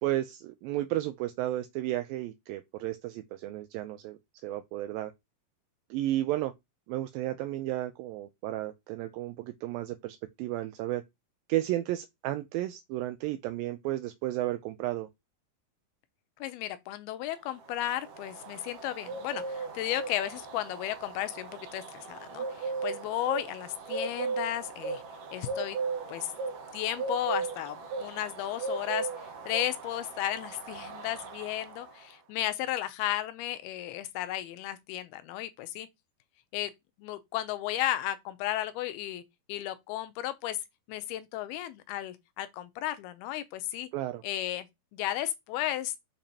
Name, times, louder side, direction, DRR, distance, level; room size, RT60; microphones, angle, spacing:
voice 1, 0.0-5.1 5.9-6.5 6.9-11.0 11.5-15.1 43.9-44.2, right 15 dB, 85° right, 2.1 m, -33 dB
voice 2, 16.4-25.0 25.3-25.8 26.1-26.3 26.7-35.9 36.5-36.7 37.0-39.2 39.5-40.6 40.9-43.9 44.2-44.7 44.9-45.9, left 13 dB, 85° left, 2.6 m, -34 dB
Bird, 17.4-32.1, right 4 dB, 60° right, 1.6 m, -37 dB
6.9 x 5.2 x 2.9 m
omnidirectional pair, 4.5 m